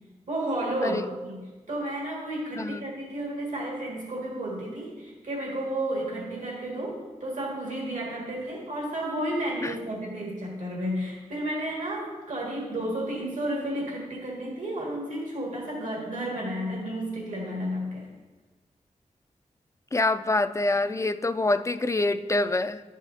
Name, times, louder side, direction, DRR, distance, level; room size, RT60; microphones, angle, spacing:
voice 1, 0.3-18.1, right 1 dB, 75° right, -4 dB, 2.0 m, -32 dB
voice 2, 19.9-22.8, left 2 dB, 25° left, 11 dB, 0.3 m, -26 dB
11.5 x 4.9 x 2.7 m, 1.2 s
cardioid pair, 50°, 13 cm